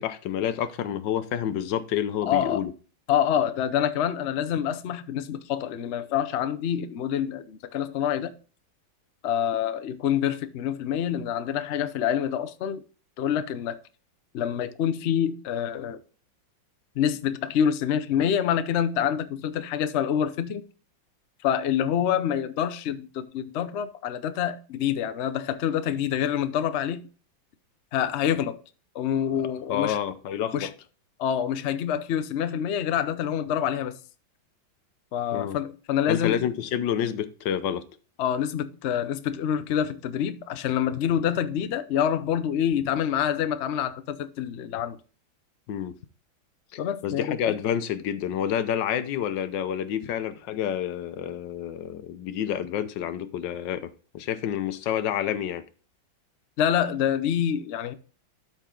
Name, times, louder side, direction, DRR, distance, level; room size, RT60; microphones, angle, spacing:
voice 1, 0.0-2.7 29.7-30.7 35.3-35.6 36.1-37.9 45.7-46.0 46.7-55.6, left 9 dB, 70° left, 1.4 m, -29 dB
voice 2, 2.3-2.6 3.1-8.3 9.2-12.8 13.2-13.8 14.3-16.0 17.0-20.6 21.4-27.0 27.9-28.6 28.9-30.0 30.5-30.7 31.2-34.0 35.1-36.4 38.2-45.0 46.8-47.6 56.6-57.9, left 9 dB, 90° left, 0.6 m, -26 dB
13.0 x 4.5 x 3.7 m
omnidirectional pair, 2.1 m